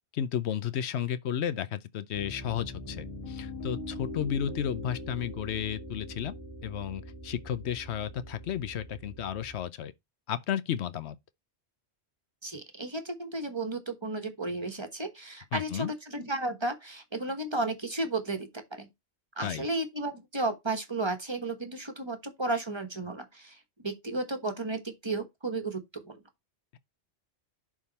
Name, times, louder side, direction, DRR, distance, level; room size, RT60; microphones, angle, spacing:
voice 1, 0.1-6.3 6.6-9.9 10.3-11.2 15.5-15.9 19.4-19.7, left 9 dB, 75° left, 0.9 m, -33 dB
Piano, 2.1-9.6, left 1 dB, 30° left, 3.1 m, -42 dB
voice 2, 12.4-18.9 19.4-23.6 23.8-26.2, right 2 dB, 25° right, 1.2 m, -33 dB
11.0 x 3.7 x 4.1 m
omnidirectional pair, 1.2 m